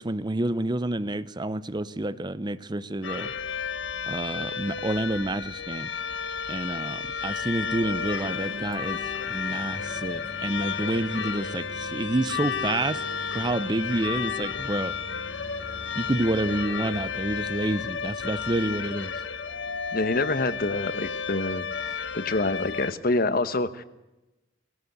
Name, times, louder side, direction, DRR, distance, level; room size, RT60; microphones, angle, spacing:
voice 1, 0.0-3.3 4.1-5.9 6.5-9.0 9.3-13.0 13.3-14.9 15.9-19.1, right 1 dB, 20° right, 15 dB, 0.6 m, -28 dB
sound 1, 3.0-22.9, left 6 dB, 65° left, 1.2 m, -32 dB
sound 2, 7.9-17.9, right 1 dB, 75° right, 2.4 m, -45 dB
voice 2, 19.9-21.7 22.1-23.8, left 2 dB, 50° left, 13 dB, 1.2 m, -26 dB
20.0 x 17.5 x 8.0 m, 0.99 s
head